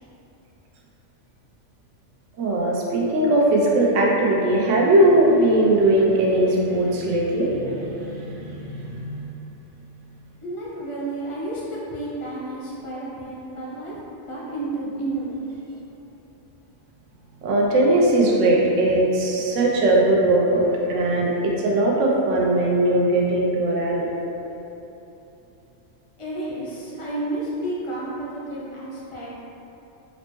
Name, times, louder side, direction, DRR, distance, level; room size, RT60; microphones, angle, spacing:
voice 1, 2.4-9.3 17.4-24.1, right 1 dB, 85° right, -3 dB, 0.9 m, -20 dB
voice 2, 10.4-13.9 14.2-15.5 26.2-29.4, right 2 dB, 40° left, -7 dB, 0.5 m, -31 dB
4.1 x 2.1 x 3.0 m, 3.0 s
omnidirectional pair, 1.3 m